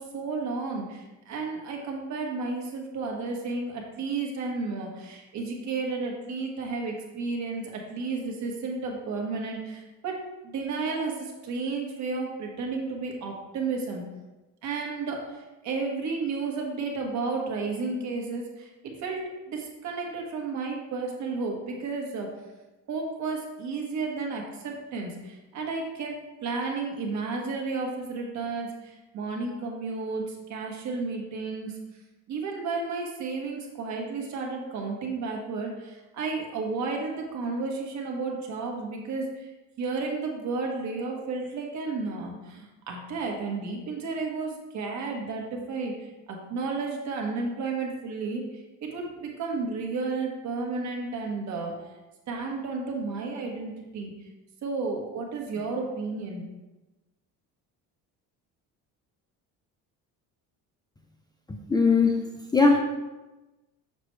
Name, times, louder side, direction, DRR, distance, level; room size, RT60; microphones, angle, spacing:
voice 1, 0.0-10.2 10.4-14.0 14.6-22.3 22.9-31.8 32.3-39.5 39.8-45.9 46.3-48.4 48.8-51.7 52.3-54.1 54.6-56.4, right 4 dB, 55° right, 0 dB, 1.5 m, -32 dB
voice 2, 61.7-62.2 62.5-62.8, left 4 dB, 10° left, 1 dB, 0.5 m, -19 dB
6.7 x 6.1 x 3.3 m, 1.1 s
cardioid pair, 130°, 35 cm